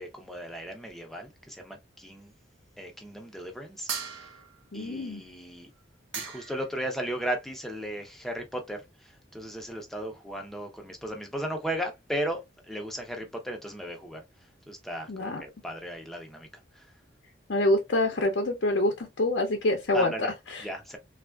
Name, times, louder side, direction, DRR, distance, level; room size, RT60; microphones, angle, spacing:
voice 1, 0.0-2.3 2.8-4.3 4.7-5.7 6.2-12.4 12.7-14.2 14.7-16.5 16.7-16.9 19.9-20.3 20.6-21.0, equal, ahead, 0.6 m, -36 dB
sound 1, 3.9-4.7 5.8-5.9 6.1-6.7, right 6 dB, 85° right, 0.9 m, -37 dB
voice 2, 4.7-5.2 15.1-15.4 17.5-20.7, left 1 dB, 75° left, 0.6 m, -26 dB
3.4 x 2.4 x 2.2 m
head